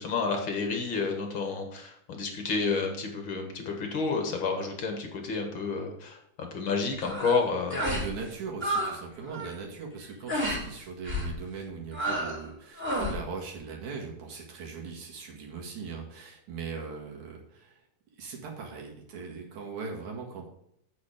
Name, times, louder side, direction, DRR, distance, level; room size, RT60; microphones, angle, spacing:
voice 1, 0.0-7.8, left 4 dB, 50° left, 3 dB, 1.9 m, -30 dB
sound 1, 7.0-7.4 7.7-8.1 8.4-8.9 9.2-9.6 10.3-10.6 11.0-11.3 11.9-12.4 12.8-13.2, equal, 5° right, 2.4 m, -30 dB
voice 2, 7.9-17.8 18.2-20.5, right 5 dB, 70° right, 0 dB, 3.2 m, -40 dB
8.4 x 6.6 x 5.0 m, 0.75 s
omnidirectional pair, 3.6 m